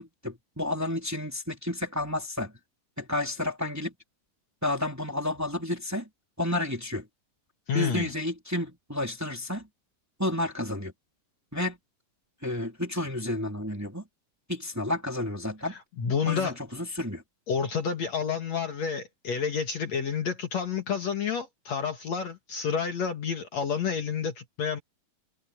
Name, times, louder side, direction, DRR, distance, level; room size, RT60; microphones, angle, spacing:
voice 1, 0.0-2.5 3.0-3.9 4.6-6.1 6.4-7.1 7.7-9.7 10.2-10.9 11.5-11.8 12.4-14.1 14.5-15.8 16.2-17.2, left 1 dB, 5° right, 2.9 m, -31 dB
voice 2, 7.7-8.1 15.6-16.6 17.5-24.8, left 6 dB, 55° left, 2.7 m, -29 dB
omnidirectional pair, 4.0 m